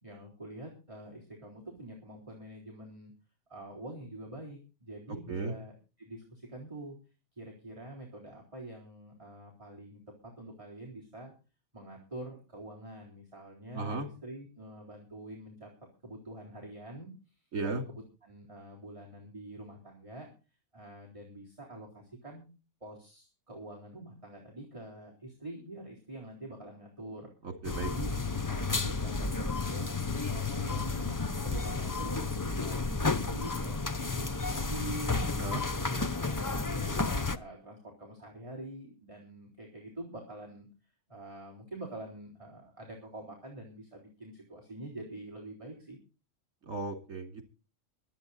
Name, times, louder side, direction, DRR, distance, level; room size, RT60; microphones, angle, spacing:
voice 1, 0.0-3.1 3.5-7.0 7.3-11.3 11.7-15.7 16.0-17.5 17.9-20.3 20.7-22.4 22.8-27.3 27.7-28.1 28.5-29.9 30.3-35.2 35.6-46.0, right 1 dB, 20° right, -2 dB, 3.9 m, -46 dB
voice 2, 13.7-14.1 17.5-17.8 27.4-27.9 35.4-36.1 46.7-47.4, right 3 dB, 65° right, 6 dB, 3.0 m, -36 dB
sound 1, 27.6-37.4, left 3 dB, 25° left, 0.4 m, -32 dB
24.0 x 8.6 x 4.2 m, 0.33 s
omnidirectional pair, 1.5 m